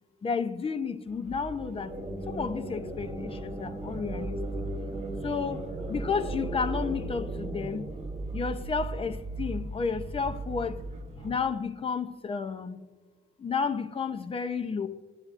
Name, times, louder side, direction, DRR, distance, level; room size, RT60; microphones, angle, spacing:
voice 1, 0.2-1.9 2.3-4.4 5.2-5.6 5.9-7.8 8.3-10.7 11.2-12.8 13.4-14.9, left 5 dB, 25° left, 0.6 m, -31 dB
sound 1, 1.1-11.3, right 2 dB, 30° right, 1.0 m, -38 dB
sound 2, 1.4-9.0, right 1 dB, 15° right, 3.6 m, -39 dB
21.0 x 9.1 x 2.5 m
cardioid pair, 165°, 21 cm